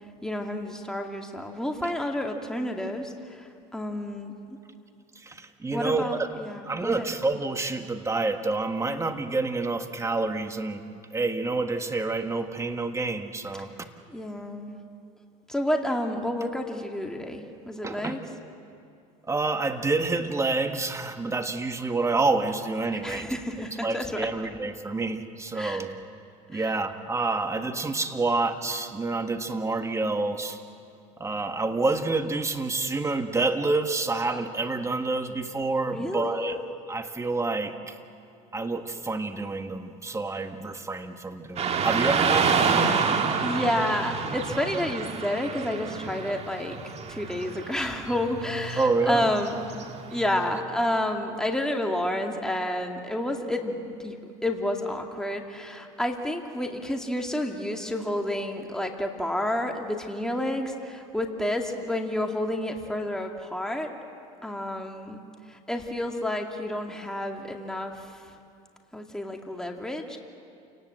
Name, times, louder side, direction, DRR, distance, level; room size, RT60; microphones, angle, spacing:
voice 1, 0.2-4.3 5.7-7.1 14.1-14.8 15.5-18.2 22.9-24.3 25.6-25.8 26.5-26.7 35.9-36.6 43.0-46.8 47.1-49.9 50.1-54.2 54.4-63.9 64.4-65.2 65.5-68.1 68.9-70.2, left 1 dB, 5° left, 2 dB, 2.2 m, -30 dB
voice 2, 5.1-6.1 6.6-13.7 17.8-18.2 19.3-23.3 23.8-25.9 26.5-30.6 31.2-36.6 36.9-38.0 38.5-42.9 48.8-49.3, right 3 dB, 15° right, 7 dB, 1.7 m, -28 dB
Car passing by / Traffic noise roadway noise, 41.6-50.6, right 5 dB, 35° right, 2.0 m, -28 dB
29.0 x 19.0 x 7.7 m, 2.4 s
supercardioid pair, 95°, 18 cm